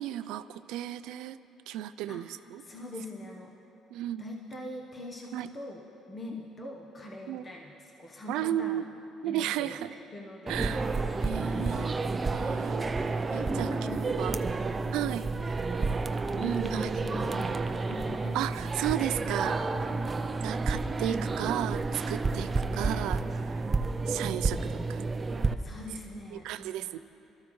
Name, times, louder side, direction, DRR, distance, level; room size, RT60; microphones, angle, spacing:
voice 1, 0.0-1.4 1.7-2.6 3.9-4.2 5.3-5.5 7.3-7.5 8.3-8.9 9.2-9.9 10.5-10.9 11.2-11.9 12.3-14.4 14.9-15.3 16.4-17.2 18.3-19.6 20.4-23.7 24.1-25.0 26.3-27.0, right 12 dB, 85° right, 13 dB, 0.3 m, -34 dB
voice 2, 2.1-3.5 4.2-5.8 6.1-8.9 9.2-12.1 13.1-15.5 16.3-18.4 19.6-20.5 22.4-22.6 25.6-27.0, left 1 dB, 25° left, 0 dB, 1.0 m, -43 dB
sound 1, 10.5-25.5, right 3 dB, 20° right, 0.5 m, -30 dB
25.0 x 13.5 x 3.2 m, 3.0 s
cardioid pair, 140°, 0 cm